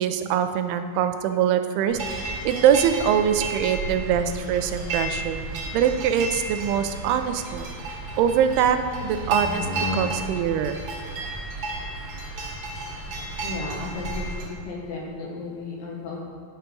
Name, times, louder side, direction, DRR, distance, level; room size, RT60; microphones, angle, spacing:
voice 1, 0.0-5.4 5.7-7.7 8.2-9.7 9.9-10.8, right 9 dB, 90° right, 9 dB, 2.6 m, -23 dB
sound 1, 1.9-14.5, right 1 dB, 55° right, 1.6 m, -32 dB
voice 2, 13.4-16.2, left 3 dB, 70° left, -3 dB, 3.0 m, -34 dB
9.5 x 4.5 x 5.2 m, 2.4 s
omnidirectional pair, 4.5 m